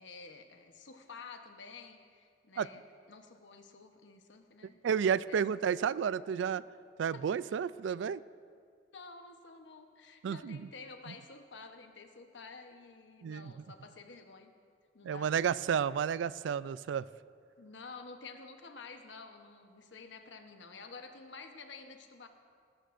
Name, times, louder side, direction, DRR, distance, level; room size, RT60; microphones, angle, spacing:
voice 1, 0.0-4.8 5.3-5.6 7.1-7.5 8.9-14.5 14.9-15.4 17.6-22.3, left 4 dB, 85° left, 6 dB, 1.0 m, -50 dB
voice 2, 4.8-6.6 7.0-8.2 10.2-10.7 11.1-11.2 13.2-13.6 15.0-17.1, right 7 dB, 85° right, 18 dB, 0.3 m, -31 dB
19.5 x 13.0 x 2.6 m, 2.2 s
head